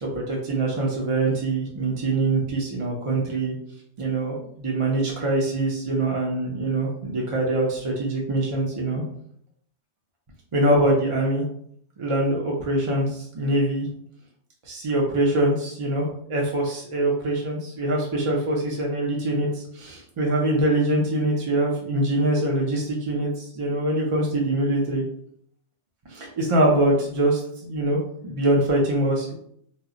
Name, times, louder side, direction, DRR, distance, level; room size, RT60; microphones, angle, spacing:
voice 1, 0.0-3.6 4.0-9.0 10.5-11.4 12.0-13.9 14.7-25.0 26.1-29.3, right 1 dB, 60° right, -2 dB, 0.3 m, -24 dB
2.0 x 2.0 x 3.6 m, 0.68 s
omnidirectional pair, 1.2 m